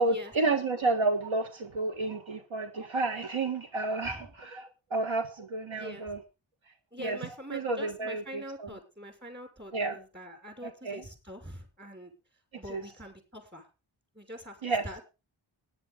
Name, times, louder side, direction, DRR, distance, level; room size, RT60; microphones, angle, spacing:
voice 1, 0.0-6.2 7.0-7.2 7.5-8.2 8.6-8.7 9.7-10.0 10.8-11.0 12.7-12.8 14.6-14.8, right 3 dB, 70° right, 6 dB, 1.4 m, -30 dB
voice 2, 5.7-6.1 6.9-12.1 12.6-13.7 14.1-15.0, equal, 20° right, 5 dB, 5.9 m, -44 dB
18.0 x 10.0 x 3.6 m, 0.30 s
wide cardioid pair, 60°, 49 cm